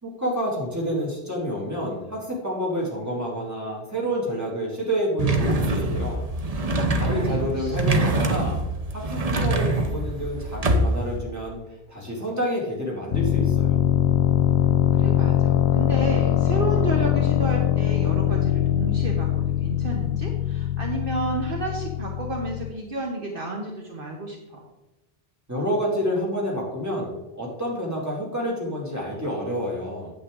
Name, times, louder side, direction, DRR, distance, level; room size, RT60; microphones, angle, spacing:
voice 1, 0.0-6.2 7.0-8.6 8.9-11.6 11.9-13.8 25.5-30.1, equal, 15° right, -3 dB, 2.4 m, -28 dB
sound 1, 5.2-11.2, right 2 dB, 40° right, 0.9 m, -24 dB
voice 2, 6.9-8.4 14.9-24.6, right 2 dB, 60° right, 0 dB, 1.3 m, -31 dB
sound 2, 13.1-22.7, left 11 dB, 85° left, 0.8 m, -22 dB
8.6 x 8.2 x 3.7 m, 0.99 s
omnidirectional pair, 1.1 m